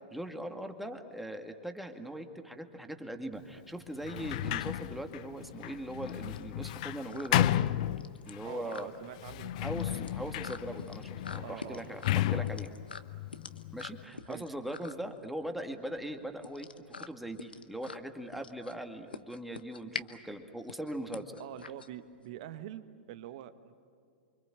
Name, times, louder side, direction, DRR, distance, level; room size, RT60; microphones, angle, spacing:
voice 1, 0.1-7.6 8.3-8.9 9.6-12.7 13.7-16.7 17.0-21.4, right 1 dB, ahead, 5 dB, 2.1 m, -40 dB
Sliding door, 4.0-8.5 9.2-14.0, left 12 dB, 50° left, 0.7 m, -33 dB
sound 1, 5.1-22.4, left 4 dB, 75° left, 1.2 m, -47 dB
voice 2, 8.4-9.7 10.0-10.1 11.4-12.0 12.3-12.5 14.3-14.4 21.4-23.7, right 11 dB, 50° right, 11 dB, 1.5 m, -45 dB
29.0 x 25.5 x 7.5 m, 2.3 s
figure-of-eight pair, 100°, 5 cm